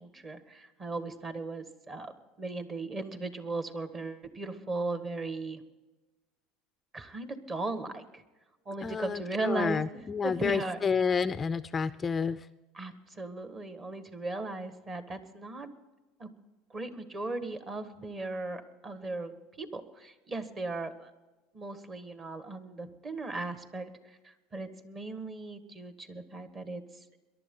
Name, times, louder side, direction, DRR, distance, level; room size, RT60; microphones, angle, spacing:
voice 1, 0.0-2.1 2.4-5.6 6.9-8.2 8.6-10.8 12.7-15.7 16.2-16.3 16.7-21.1 21.5-27.0, right 2 dB, 25° right, 9 dB, 1.6 m, -37 dB
voice 2, 8.8-12.5, left 6 dB, 20° left, 14 dB, 0.4 m, -30 dB
22.5 x 11.5 x 3.8 m, 1.1 s
supercardioid pair, 125°, 0 cm